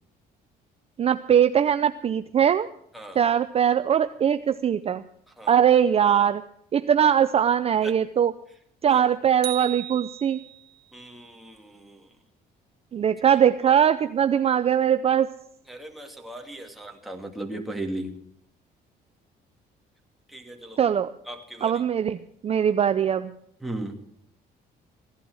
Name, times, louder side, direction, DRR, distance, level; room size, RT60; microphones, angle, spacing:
voice 1, 1.0-2.7 3.2-5.0 5.5-6.4 6.7-8.3 8.8-10.4 12.9-15.3 20.8-21.1 21.6-23.3, right 9 dB, 35° right, 10 dB, 0.6 m, -21 dB
sound 1, 9.4-10.8, right 13 dB, 70° right, 1.6 m, -36 dB
voice 2, 10.9-12.1 15.7-18.2 20.3-20.8 21.3-21.7 23.6-24.0, right 1 dB, ahead, 2 dB, 2.3 m, -37 dB
16.0 x 11.5 x 6.3 m, 0.70 s
cardioid pair, 110°, 17 cm